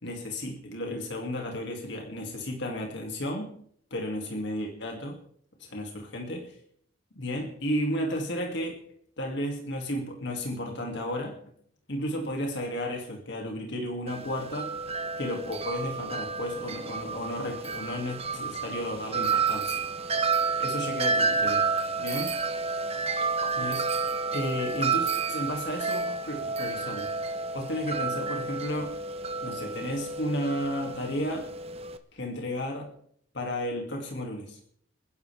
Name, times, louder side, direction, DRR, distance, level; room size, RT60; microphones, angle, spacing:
voice 1, 0.0-3.5 3.9-5.2 5.6-6.5 7.2-8.8 9.2-11.4 11.9-14.8 15.2-19.8 20.6-21.6 22.0-22.4 23.4-23.9 24.3-27.1 27.5-29.0 29.4-31.5 32.1-32.9 33.3-34.6, left 1 dB, 65° left, 1 dB, 2.6 m, -33 dB
Wind chime, 14.1-32.0, right 4 dB, 30° right, 1.0 m, -30 dB
29.0 x 10.5 x 3.5 m, 0.63 s
head